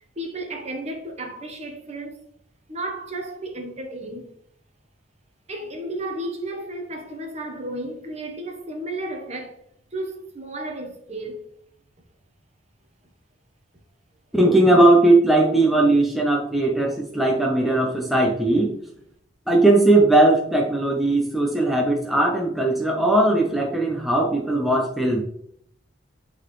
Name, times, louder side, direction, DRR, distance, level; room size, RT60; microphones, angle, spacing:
voice 1, 0.2-2.2 2.7-4.3 5.5-9.6 9.9-11.4, right 1 dB, 35° right, 1.0 m, -33 dB
voice 2, 14.3-18.7 19.5-25.2, right 2 dB, ahead, 0.7 m, -18 dB
8.5 x 4.1 x 3.1 m
head